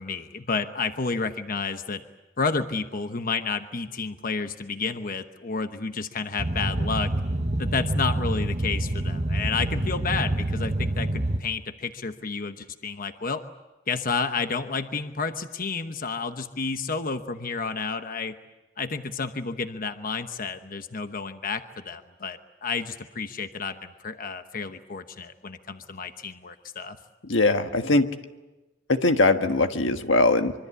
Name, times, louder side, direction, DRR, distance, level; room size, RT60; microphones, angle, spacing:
voice 1, 0.0-2.0 2.4-7.1 7.6-13.4 13.9-18.4 18.8-27.0, left 4 dB, 50° left, 8 dB, 1.0 m, -30 dB
Boat Water vehicle, 6.4-11.4, right 1 dB, 40° right, 1.1 m, -27 dB
voice 2, 27.2-28.1 28.9-30.5, left 2 dB, 85° left, 7 dB, 1.5 m, -21 dB
25.0 x 24.0 x 8.4 m, 1.1 s
head